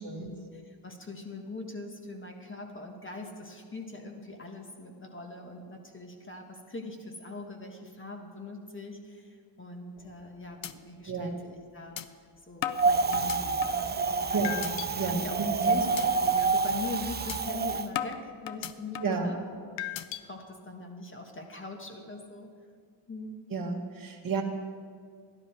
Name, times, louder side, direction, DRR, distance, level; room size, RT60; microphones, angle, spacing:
voice 1, 0.0-12.0 12.5-14.5 15.0-22.5 23.1-23.4, left 2 dB, 25° left, 2 dB, 1.5 m, -42 dB
sound 1, 10.0-10.3 10.6-10.7 11.1-11.2 12.0-12.1 12.6-13.9 14.4-14.9 15.3-15.5 16.0-16.1 16.5-16.7 17.3-17.4 17.9-19.2 19.8-20.2, left 12 dB, 85° left, 0.6 m, -36 dB
Wind, 12.8-17.9, right 4 dB, 25° right, 0.4 m, -28 dB
voice 2, 14.3-15.7 19.0-19.3 23.5-24.4, right 4 dB, 50° right, 1 dB, 1.4 m, -31 dB
12.5 x 11.5 x 4.5 m, 2.1 s
wide cardioid pair, 125°, 44 cm